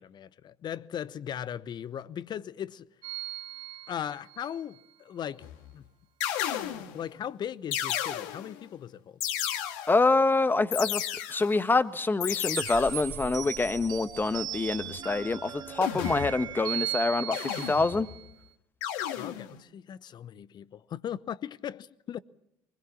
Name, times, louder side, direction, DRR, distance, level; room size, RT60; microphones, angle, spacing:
voice 1, 0.0-2.9 3.9-5.5 5.7-5.8 6.9-9.2 19.1-22.2, left 9 dB, 45° left, 0.9 m, -38 dB
sound 1, 3.0-4.6 12.5-18.3, right 12 dB, 50° right, 2.6 m, -38 dB
sound 2, 5.4-5.7 6.2-7.0 7.7-8.6 9.2-10.1 10.7-11.6 12.2-13.1 15.8-16.6 17.3-18.2 18.8-19.6, left 11 dB, 75° left, 1.8 m, -33 dB
voice 2, 9.9-11.0 11.3-18.1, left 3 dB, 20° left, 1.3 m, -26 dB
24.0 x 20.5 x 7.4 m
hypercardioid pair, 60°, 10 cm